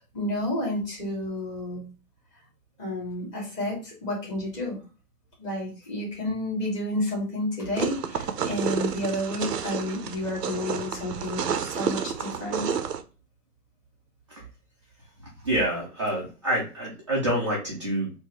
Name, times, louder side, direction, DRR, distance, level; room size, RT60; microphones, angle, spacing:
voice 1, 0.0-1.8 2.8-4.8 5.4-12.6, left 1 dB, 15° left, -5 dB, 1.6 m, -30 dB
sound 1, 7.8-13.0, right 7 dB, 80° right, 0.7 m, -30 dB
voice 2, 15.4-18.1, right 1 dB, 20° right, -6 dB, 0.5 m, -27 dB
4.6 x 2.7 x 3.0 m, 0.33 s
hypercardioid pair, 160°, 47 cm